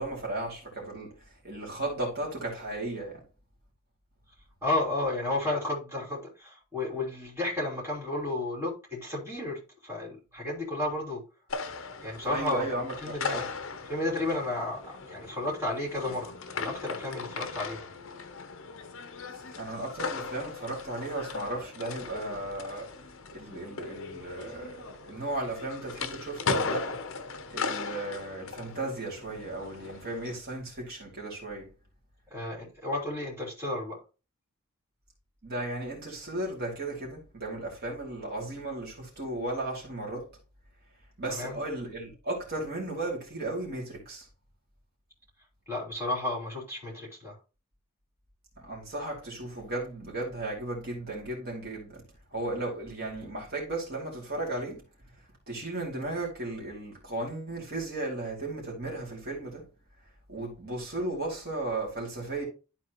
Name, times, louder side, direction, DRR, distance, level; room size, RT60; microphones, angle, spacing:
voice 1, 0.0-3.2 12.3-13.4 19.6-22.9 23.3-27.0 27.5-31.7 35.4-40.3 41.2-44.3 48.6-52.0 52.3-54.8 55.5-59.6 60.3-62.5, right 2 dB, 45° right, 2.7 m, -35 dB
voice 2, 4.6-11.2 12.0-12.7 13.0-13.5 13.9-17.9 32.3-34.0 41.3-41.5 45.7-47.4, left 2 dB, 10° right, 3.2 m, -32 dB
sound 1, 11.5-30.4, left 4 dB, 60° left, 0.8 m, -38 dB
12.0 x 4.1 x 3.0 m
head